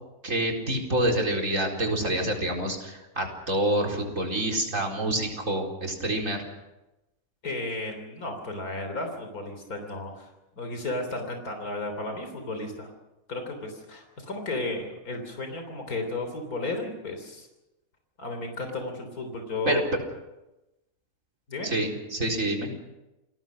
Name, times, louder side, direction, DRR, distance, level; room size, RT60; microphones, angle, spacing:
voice 1, 0.2-6.5 19.7-19.8 21.6-22.7, right 1 dB, 60° right, 1 dB, 4.7 m, -27 dB
voice 2, 7.4-10.3 10.6-12.9 13.3-17.5 18.2-19.8 21.5-21.7, left 2 dB, 85° left, 5 dB, 3.9 m, -34 dB
29.0 x 19.5 x 6.4 m, 0.99 s
omnidirectional pair, 1.5 m